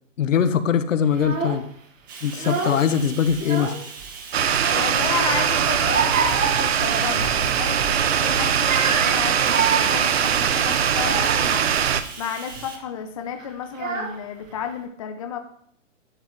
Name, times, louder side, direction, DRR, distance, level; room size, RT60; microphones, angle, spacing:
voice 1, 0.2-1.6 2.2-3.7, left 8 dB, 80° left, 11 dB, 1.1 m, -21 dB
Child speech kid speaking / Crying sobbing, 1.1-1.7 2.3-3.0 3.3-4.1 4.6-7.4 7.7-8.0 8.5-11.6 12.2-12.6 13.4-13.5 13.7-14.5, right 5 dB, 85° right, 2.1 m, -28 dB
Bathtub (filling or washing), 2.1-12.8, right 5 dB, 15° right, 0.7 m, -40 dB
sound 1, 4.3-12.0, right 8 dB, 55° right, 0.8 m, -21 dB
voice 2, 4.7-11.7 12.2-15.4, left 8 dB, 25° left, 6 dB, 0.6 m, -32 dB
11.0 x 7.7 x 3.2 m, 0.65 s
hypercardioid pair, 170°, 38 cm